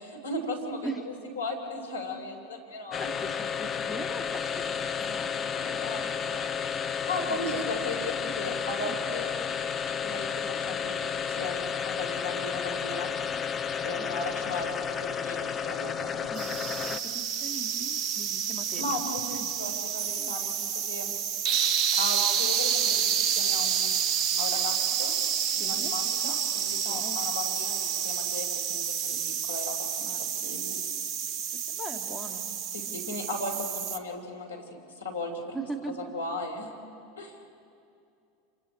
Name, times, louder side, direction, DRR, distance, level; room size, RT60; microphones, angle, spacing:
voice 1, 0.0-3.1 5.5-9.3 9.9-13.1 13.8-16.4 18.8-21.1 21.9-23.0 23.3-23.9 24.3-25.1 25.5-30.1 30.4-30.8 32.7-34.6 35.0-35.6 36.1-36.7 37.2-37.5, left 2 dB, 90° left, 2 dB, 3.7 m, -36 dB
sound 1, 2.9-17.2, left 7 dB, 30° left, 0.7 m, -32 dB
voice 2, 3.0-6.1 7.2-7.6 8.8-9.0 10.4-10.6 12.7-12.8 13.1-13.6 14.0-14.3 16.3-19.0 19.3-19.5 20.2-20.4 25.5-26.3 26.9-27.2 30.1-30.5 31.5-32.5 32.9-33.2 35.5-36.1, right 2 dB, ahead, 2 dB, 2.1 m, -42 dB
sound 2, 16.4-34.0, right 8 dB, 40° right, 1.3 m, -29 dB
28.5 x 27.0 x 4.4 m, 2.5 s
hypercardioid pair, 85°, 0 cm